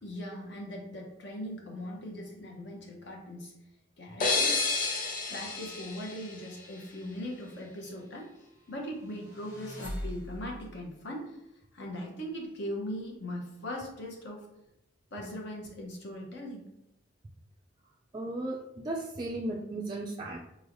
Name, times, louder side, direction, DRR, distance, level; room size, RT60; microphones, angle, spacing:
voice 1, 0.0-3.5 4.0-4.6 5.3-8.3 8.7-11.4 11.7-14.5 15.1-16.7, equal, 65° left, -1 dB, 0.8 m, -40 dB
sound 1, 4.2-7.0, left 3 dB, 45° left, 0.5 m, -31 dB
sound 2, 9.0-10.7, equal, 90° left, 1.3 m, -41 dB
voice 2, 18.1-20.4, right 2 dB, 25° right, -2 dB, 0.3 m, -35 dB
4.0 x 3.1 x 2.6 m, 0.86 s
head